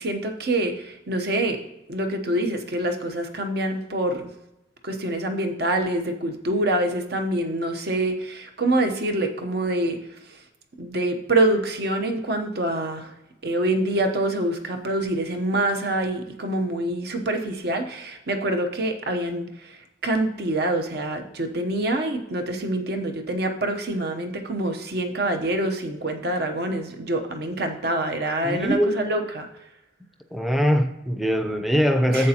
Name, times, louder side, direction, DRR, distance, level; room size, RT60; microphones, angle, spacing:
voice 1, 0.0-1.6 1.9-4.3 4.8-10.5 10.8-13.1 13.4-29.5 32.1-32.3, right 1 dB, 55° right, 5 dB, 0.9 m, -26 dB
voice 2, 28.4-29.0 30.3-32.3, equal, ahead, 6 dB, 0.5 m, -22 dB
11.0 x 7.6 x 2.9 m, 0.90 s
head